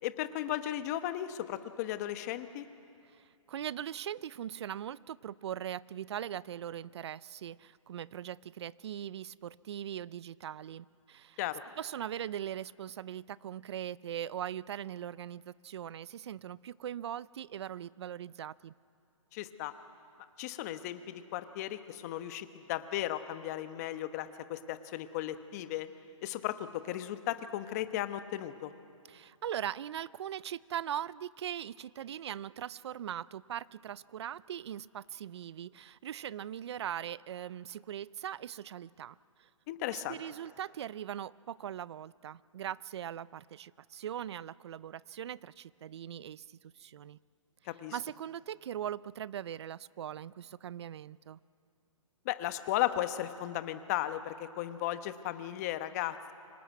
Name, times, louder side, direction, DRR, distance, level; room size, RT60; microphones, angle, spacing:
voice 1, 0.0-2.6 11.4-11.6 19.3-19.7 20.4-25.9 26.2-28.7 39.7-40.2 47.6-48.0 52.2-56.2, left 13 dB, 30° left, 10 dB, 1.1 m, -35 dB
voice 2, 3.2-11.4 11.8-18.7 29.1-39.5 39.9-47.2 47.9-51.4, right 10 dB, 55° right, 21 dB, 0.5 m, -40 dB
25.0 x 18.5 x 9.4 m, 2.5 s
hypercardioid pair, 155°, 17 cm